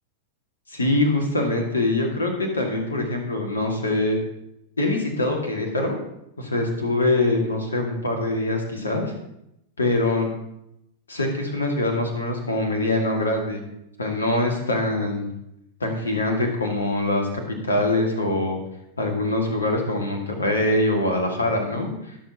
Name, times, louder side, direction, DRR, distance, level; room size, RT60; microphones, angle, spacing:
voice 1, 0.7-4.2 4.8-6.0 6.4-9.1 9.8-10.3 11.1-13.6 14.0-15.3 15.8-18.6 19.0-22.2, left 2 dB, 75° left, 3 dB, 2.3 m, -23 dB
20.0 x 7.1 x 3.0 m, 0.82 s
figure-of-eight pair, 90°, 0 cm